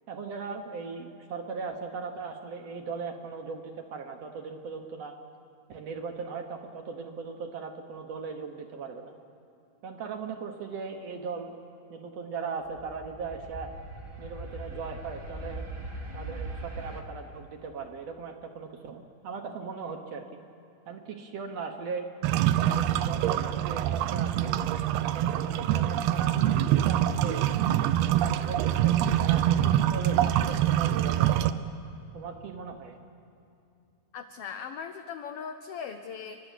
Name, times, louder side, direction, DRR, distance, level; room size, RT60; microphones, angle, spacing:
voice 1, 0.1-5.2 5.7-9.1 9.8-11.5 11.9-13.7 14.2-15.6 16.1-20.3 20.9-22.1 22.6-24.5 24.9-27.4 28.0-31.6 32.1-33.0, right 5 dB, 60° right, 5 dB, 2.0 m, -38 dB
sound 1, 12.6-17.0, right 2 dB, 15° right, 1.2 m, -40 dB
sound 2, 22.2-31.5, right 12 dB, 85° right, 1.5 m, -25 dB
voice 2, 34.1-36.4, left 6 dB, 90° left, 7 dB, 1.3 m, -39 dB
29.5 x 12.0 x 8.3 m, 2.6 s
omnidirectional pair, 3.7 m